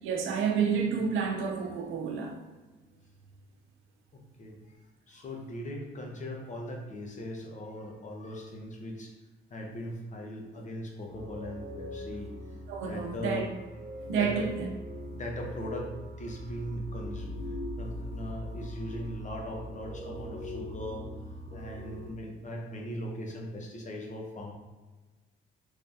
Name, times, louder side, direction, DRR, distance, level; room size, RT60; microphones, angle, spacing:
voice 1, 0.0-2.4 12.7-13.5 14.1-14.7, right 6 dB, 85° right, 0.6 m, -29 dB
voice 2, 4.1-4.6 5.1-9.1 9.5-12.3 12.8-13.4 14.1-14.4 15.1-17.3 17.8-21.1 21.5-24.5, left 1 dB, 40° left, 0.8 m, -39 dB
sound 1, 11.1-22.1, equal, 45° right, 1.1 m, -41 dB
3.4 x 3.2 x 2.7 m
cardioid pair, 90°, 20 cm